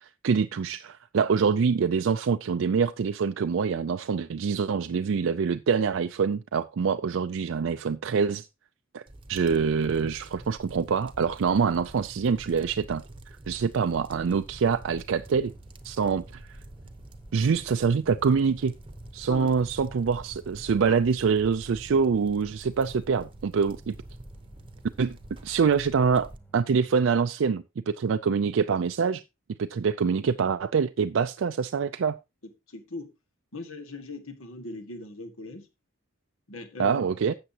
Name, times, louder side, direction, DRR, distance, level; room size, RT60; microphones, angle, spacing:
voice 1, 0.0-8.5 8.9-9.0 9.3-13.0 13.5-15.5 15.8-16.6 17.3-18.7 19.1-23.9 25.0-25.2 25.4-26.3 26.5-29.2 29.6-32.2 36.8-37.3, right 5 dB, 65° right, 0.4 m, -25 dB
sound 1, 9.1-26.4, right 1 dB, 25° right, 0.8 m, -46 dB
sound 2, 14.0-27.2, right 3 dB, 10° left, 1.5 m, -55 dB
voice 2, 32.4-33.1 33.5-35.7 36.5-37.2, left 2 dB, 80° left, 1.8 m, -40 dB
12.5 x 8.0 x 2.9 m
head